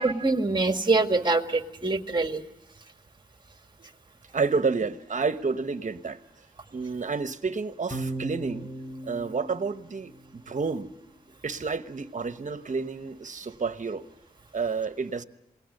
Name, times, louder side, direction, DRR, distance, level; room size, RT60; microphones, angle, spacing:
voice 1, 0.0-2.4, right 3 dB, 30° right, 1.9 m, -24 dB
voice 2, 4.3-6.2 6.7-8.7 9.1-10.1 10.5-10.9 11.4-14.1 14.5-15.2, right 4 dB, 50° right, 1.1 m, -29 dB
sound 1, 7.9-10.5, right 2 dB, 5° left, 5.6 m, -37 dB
27.5 x 19.0 x 6.6 m
cardioid pair, 70°, 16 cm